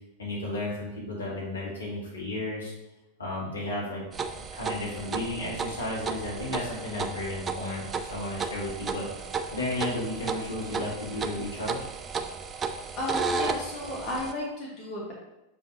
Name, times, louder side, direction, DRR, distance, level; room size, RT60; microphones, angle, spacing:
voice 1, 0.2-2.7 3.2-4.2 4.5-11.8, left 1 dB, 75° left, -5 dB, 2.1 m, -33 dB
sound 1, 4.1-14.3, right 5 dB, 20° right, 0.4 m, -34 dB
voice 2, 12.7-15.1, left 1 dB, 35° left, -5 dB, 1.6 m, -34 dB
6.9 x 4.8 x 2.9 m, 0.96 s
figure-of-eight pair, 90°, 0 cm